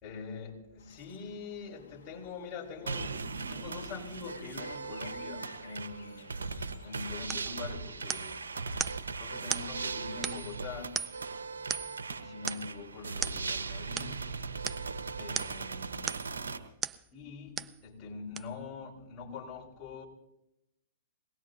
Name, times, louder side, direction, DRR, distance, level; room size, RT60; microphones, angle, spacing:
voice 1, 0.0-8.5 9.1-11.0 11.5-14.4 15.2-16.4 17.1-20.1, left 5 dB, 30° left, 5.3 m, -44 dB
sound 1, 0.8-7.6, left 6 dB, 80° left, 1.6 m, -57 dB
sound 2, 2.9-16.6, right 4 dB, 90° right, 1.2 m, -38 dB
sound 3, 7.3-7.5 8.1-8.4 8.8-9.0 9.5-9.7 10.2-10.6 10.9-11.3 11.7-12.0 12.5-12.7 13.2-13.4 14.0-14.1 14.6-14.8 15.3-15.6 16.1-16.3 16.8-17.0 17.6-17.8 18.4-18.5, right 7 dB, 20° right, 0.5 m, -36 dB
23.5 x 19.0 x 2.8 m
hypercardioid pair, 120°, 0 cm